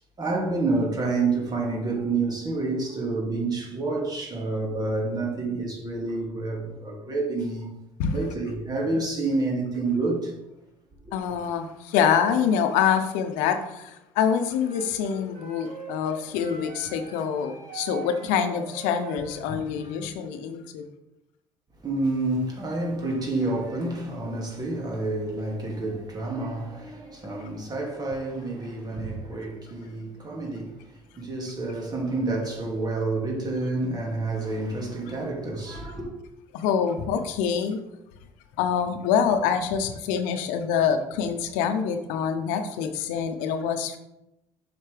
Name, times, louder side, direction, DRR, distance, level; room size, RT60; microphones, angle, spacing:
voice 1, 0.0-7.7 8.1-10.3 11.0-11.2 21.8-36.1, right 3 dB, 30° right, 2.4 m, -28 dB
voice 2, 11.1-20.8 36.5-37.8 38.6-44.0, left 7 dB, 80° left, 0.7 m, -25 dB
Wind instrument woodwind instrument, 14.6-20.1, right 5 dB, 75° right, 1.9 m, -42 dB
7.2 x 5.9 x 3.4 m
supercardioid pair, 75°, 13 cm